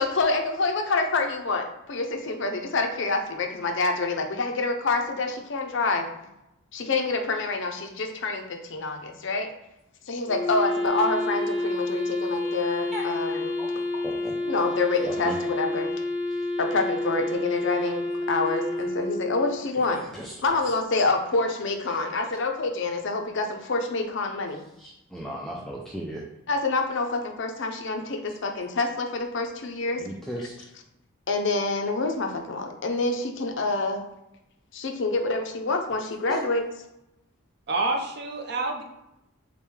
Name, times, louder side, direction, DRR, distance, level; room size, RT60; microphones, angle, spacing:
voice 1, 0.0-6.0 6.7-9.5 10.1-13.5 13.9-14.0 14.4-15.9 16.6-20.0 20.4-24.6 26.5-30.0 31.3-34.0 34.7-36.6, left 3 dB, 55° left, 4 dB, 0.6 m, -27 dB
Wind instrument woodwind instrument, 10.3-19.5, left 2 dB, 35° left, 1.2 m, -29 dB
voice 2, 14.0-14.4 15.0-15.4 16.4-16.5 19.9-20.6 21.9-22.0 24.8-26.3 30.0-30.7 36.3-36.4, equal, ahead, -3 dB, 0.3 m, -36 dB
voice 3, 37.7-38.8, right 2 dB, 50° right, 2 dB, 0.6 m, -27 dB
6.7 x 2.2 x 3.2 m, 0.88 s
head